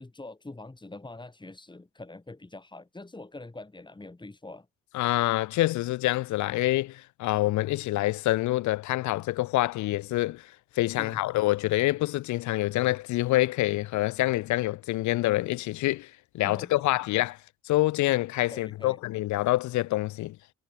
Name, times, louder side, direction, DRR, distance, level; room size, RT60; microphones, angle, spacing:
voice 1, 0.0-4.7 11.0-11.2 16.4-16.8 18.5-19.0, left 2 dB, 15° left, 4.3 m, -44 dB
voice 2, 4.9-17.4 17.7-20.4, left 17 dB, 70° left, 0.5 m, -26 dB
cardioid pair, 90°, 30 cm